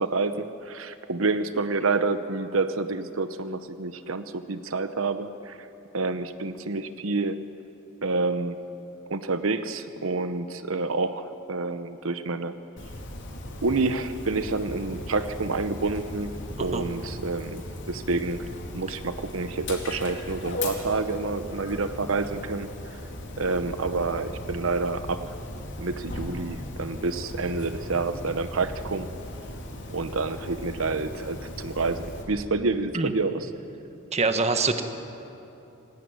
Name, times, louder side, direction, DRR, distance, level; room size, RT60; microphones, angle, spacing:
voice 1, 0.0-5.7 5.9-7.4 8.0-8.6 9.1-12.6 13.6-18.5 18.7-23.0 23.4-25.4 25.8-29.1 29.9-33.5, right 3 dB, 80° right, 10 dB, 0.9 m, -28 dB
Dog, 12.8-32.2, left 1 dB, 60° left, 4.0 m, -37 dB
voice 2, 34.1-34.8, right 3 dB, 30° right, 8 dB, 1.4 m, -24 dB
27.5 x 18.5 x 9.5 m, 2.9 s
head